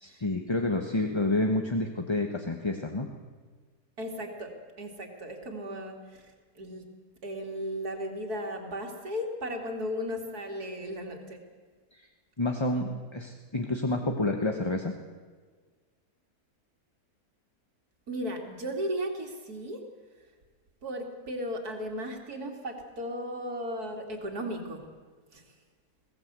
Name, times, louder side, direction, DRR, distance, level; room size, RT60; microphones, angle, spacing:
voice 1, 0.0-3.1 12.0-12.1 12.4-14.9, left 2 dB, 20° left, 4 dB, 1.1 m, -29 dB
voice 2, 4.0-6.8 7.2-11.4 18.1-19.8 20.8-24.8 25.3-25.4, equal, 70° right, 2 dB, 3.0 m, -36 dB
21.5 x 17.0 x 8.1 m, 1.5 s
omnidirectional pair, 1.7 m